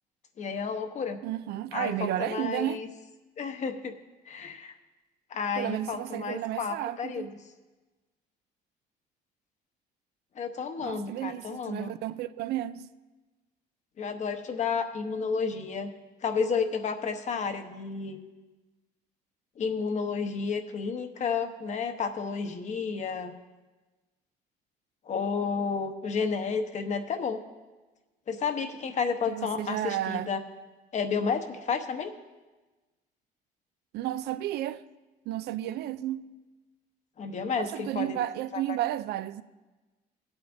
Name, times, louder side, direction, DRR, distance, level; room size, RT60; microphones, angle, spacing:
voice 1, 0.4-1.2 1.7-2.9 3.4-3.9 4.3-4.7 5.3-7.3 10.4-11.9 14.0-15.9 16.2-18.2 19.6-23.3 25.0-27.4 28.3-30.4 30.9-32.1 37.2-38.2, left 5 dB, 45° left, 0.9 m, -31 dB
voice 2, 1.2-2.8 5.6-7.3 10.8-12.9 29.3-30.3 33.9-34.8 35.3-36.3 37.6-39.4, right 13 dB, 75° right, 0.4 m, -32 dB
17.5 x 8.0 x 2.6 m
cardioid pair, 110°, 17 cm